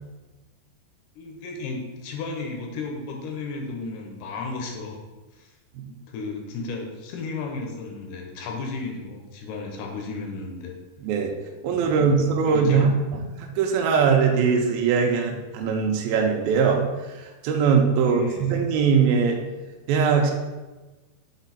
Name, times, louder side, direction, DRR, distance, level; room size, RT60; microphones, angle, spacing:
voice 1, 1.2-5.0 5.4-5.5 5.9-10.7 11.8-12.0 12.4-12.8 18.0-18.5, left 3 dB, 75° left, 1 dB, 2.7 m, -34 dB
voice 2, 11.0-11.3 11.6-19.4 19.9-20.3, right 5 dB, 85° right, 2 dB, 2.1 m, -21 dB
6.1 x 4.5 x 4.1 m, 1.2 s
omnidirectional pair, 5.0 m